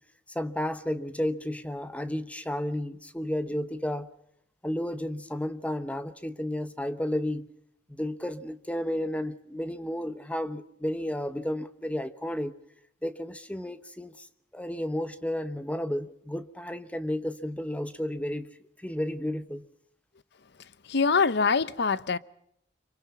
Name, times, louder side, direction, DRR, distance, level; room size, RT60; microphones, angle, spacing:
voice 1, 0.3-4.1 4.6-7.5 7.9-12.5 13.0-14.3 14.5-19.7, left 1 dB, 5° left, 0.9 m, -32 dB
voice 2, 20.9-22.2, left 5 dB, 60° left, 0.8 m, -24 dB
27.0 x 24.0 x 5.5 m
head